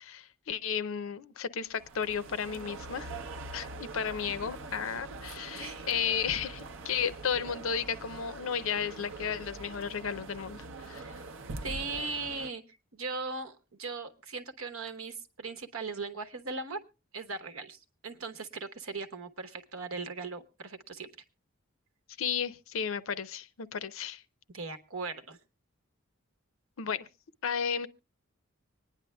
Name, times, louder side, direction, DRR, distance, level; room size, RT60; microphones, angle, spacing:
voice 1, 0.0-3.1 3.5-11.0 22.2-24.2 26.8-27.1 27.4-27.9, left 7 dB, 70° left, 0.5 m, -33 dB
sound 1, 1.7-12.5, right 3 dB, 65° right, 0.6 m, -43 dB
voice 2, 5.6-5.9 11.0-11.2 11.6-12.6 12.9-16.8 17.1-21.1 24.5-25.4, right 3 dB, 85° right, 1.1 m, -39 dB
25.0 x 10.0 x 2.2 m
head